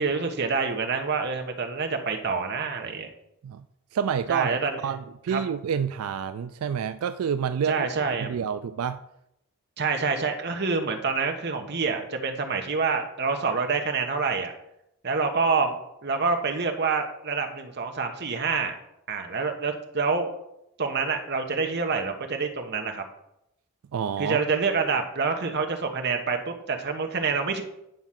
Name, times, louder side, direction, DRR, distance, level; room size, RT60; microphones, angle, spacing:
voice 1, 0.0-3.1 4.3-4.8 5.3-5.4 7.7-8.3 9.8-14.5 15.0-15.8 16.0-18.8 19.1-20.3 20.8-23.0 24.2-27.6, right 4 dB, 50° right, 4 dB, 1.2 m, -27 dB
voice 2, 3.9-7.9 8.2-9.0 23.9-24.4, right 7 dB, 85° right, 11 dB, 0.4 m, -28 dB
9.3 x 4.8 x 5.9 m, 0.82 s
head